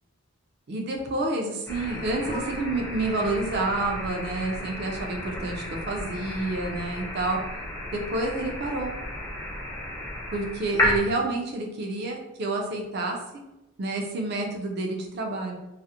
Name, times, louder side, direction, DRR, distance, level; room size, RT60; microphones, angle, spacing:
voice 1, 0.7-7.4 7.9-8.9 10.3-13.2 13.8-15.6, right 2 dB, 50° right, 2 dB, 0.4 m, -29 dB
sound 1, 1.7-11.0, left 1 dB, 10° left, 0.4 m, -33 dB
2.4 x 2.0 x 2.7 m, 0.96 s
head